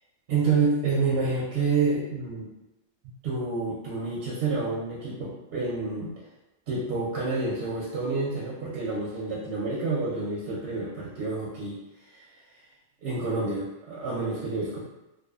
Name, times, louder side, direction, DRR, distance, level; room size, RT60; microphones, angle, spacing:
voice 1, 0.3-2.5 3.2-6.1 6.7-11.8 12.1-12.2 13.0-14.8, right 4 dB, 65° right, -5 dB, 0.7 m, -28 dB
2.4 x 2.3 x 2.3 m, 0.95 s
omnidirectional pair, 1.4 m